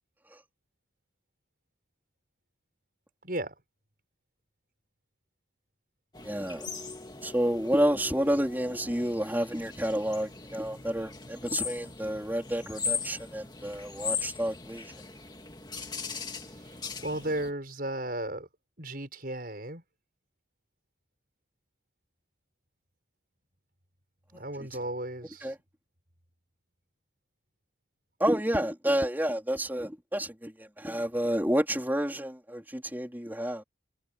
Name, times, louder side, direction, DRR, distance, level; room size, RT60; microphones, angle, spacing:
voice 1, 3.2-3.5 17.0-18.5 18.8-19.8 24.3-25.5, right 1 dB, 50° right, 7.3 m, -34 dB
sound 1, 6.1-17.5, left 5 dB, 20° left, 2.2 m, -39 dB
voice 2, 6.2-6.7 7.2-14.9 25.4-25.6 28.2-33.6, equal, 10° right, 4.1 m, -30 dB
head